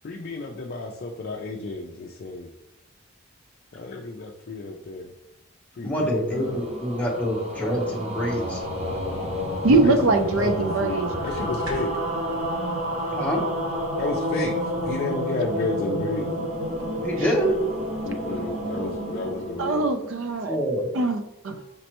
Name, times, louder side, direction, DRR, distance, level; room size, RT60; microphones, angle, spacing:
voice 1, 0.0-2.5 3.7-5.1 5.7-6.7 9.1-9.2 9.8-11.9 14.0-16.3 18.0-19.9 21.6-21.7, left 3 dB, 45° left, 2 dB, 0.4 m, -32 dB
voice 2, 5.8-8.6 13.1-13.4 17.0-17.5 20.4-20.9, equal, 5° left, -3 dB, 0.8 m, -26 dB
sound 1, 6.0-20.5, equal, 30° right, 0.9 m, -30 dB
voice 3, 9.6-11.1 19.6-20.6 20.9-21.6, right 3 dB, 65° right, 7 dB, 0.5 m, -22 dB
sound 2, 9.6-12.1, equal, 90° right, 0.9 m, -40 dB
5.2 x 3.1 x 2.9 m, 0.86 s
head